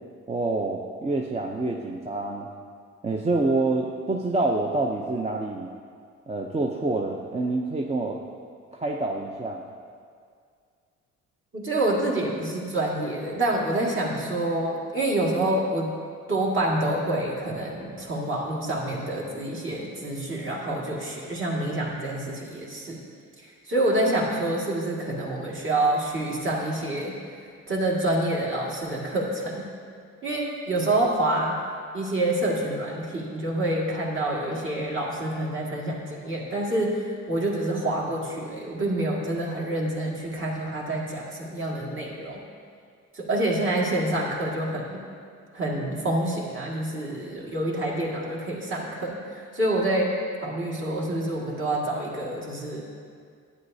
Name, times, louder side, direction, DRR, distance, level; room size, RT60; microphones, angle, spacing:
voice 1, 0.3-2.5 3.0-5.7 6.3-8.2 8.7-9.7, right 2 dB, 20° right, 0 dB, 0.5 m, -27 dB
voice 2, 11.5-15.9 16.3-23.0 23.4-27.1 27.7-29.6 30.2-31.6 31.9-42.4 43.1-45.0 45.5-50.1 50.4-52.8, right 1 dB, 40° right, -3 dB, 2.0 m, -27 dB
11.0 x 9.0 x 2.7 m, 2.2 s
cardioid pair, 90°, 30 cm